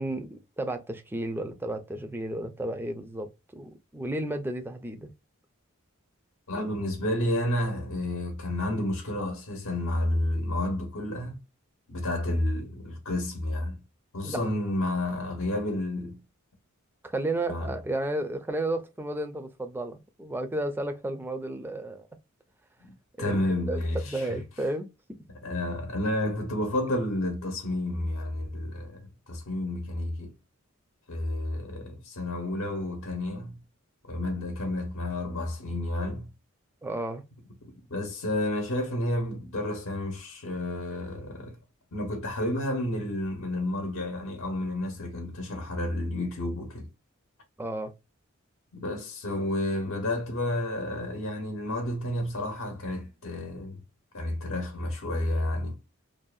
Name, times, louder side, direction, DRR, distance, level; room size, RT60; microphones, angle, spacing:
voice 1, 0.0-5.1 14.2-14.5 17.0-22.1 23.2-23.8 24.0-24.9 36.8-37.2 47.6-47.9, right 1 dB, 10° right, 0.3 m, -33 dB
voice 2, 6.5-11.4 11.9-13.8 14.1-16.2 17.5-17.7 22.8-24.4 25.4-30.3 31.1-33.6 34.1-36.3 37.6-41.6 41.9-46.9 48.7-53.8 54.1-55.8, left 1 dB, 75° left, 0.7 m, -31 dB
2.6 x 2.1 x 2.3 m
head